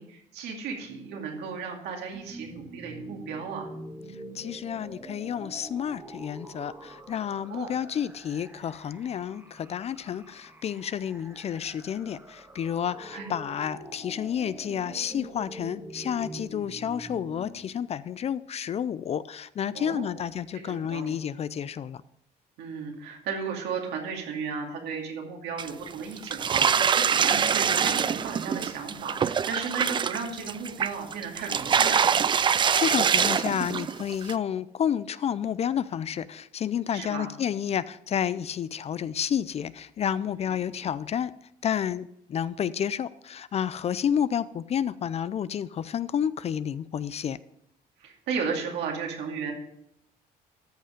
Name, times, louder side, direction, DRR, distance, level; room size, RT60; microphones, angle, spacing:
voice 1, 0.0-3.7 7.5-7.7 13.1-13.3 19.7-20.0 20.5-21.1 22.6-32.1 36.9-37.3 40.5-40.6 48.0-49.5, right 5 dB, 80° right, 2.5 m, -35 dB
sound 1, 2.1-17.5, right 1 dB, 15° right, 1.4 m, -45 dB
voice 2, 4.4-22.0 32.8-41.3 41.6-47.4, left 9 dB, 40° left, 0.4 m, -30 dB
sound 2, 25.6-25.9 26.2-34.3, right 7 dB, 30° right, 0.4 m, -24 dB
13.5 x 5.4 x 5.1 m
cardioid pair, 110°, 17 cm